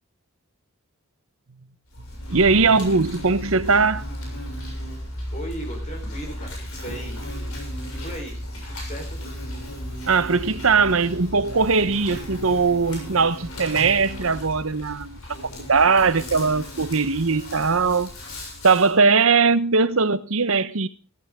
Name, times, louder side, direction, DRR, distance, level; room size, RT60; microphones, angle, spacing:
Insect, 1.9-18.9, equal, 80° left, 6.6 m, -35 dB
voice 1, 2.3-4.0 10.1-15.2 15.7-18.1 18.6-20.9, right 4 dB, 65° right, 1.0 m, -20 dB
voice 2, 5.3-7.2 7.9-8.4 8.7-9.2, right 1 dB, 35° left, 4.3 m, -37 dB
15.5 x 14.0 x 3.7 m
head